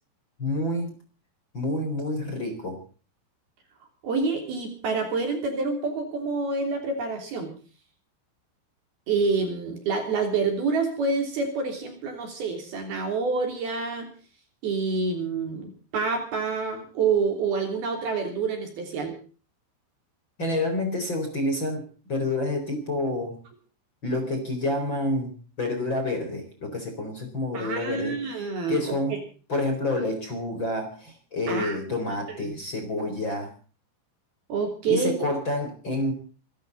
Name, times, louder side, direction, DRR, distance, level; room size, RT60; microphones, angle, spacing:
voice 1, 0.4-0.9 1.5-2.8 20.4-23.4 24.0-28.2 28.7-29.2 29.5-33.5 34.9-36.1, left 2 dB, 25° left, 4 dB, 4.2 m, -28 dB
voice 2, 4.0-7.5 9.1-14.1 14.6-19.1 27.5-29.0 31.5-31.8 32.3-32.5 34.5-35.1, right 4 dB, 50° right, 5 dB, 4.8 m, -27 dB
27.0 x 13.0 x 4.0 m, 0.38 s
omnidirectional pair, 5.9 m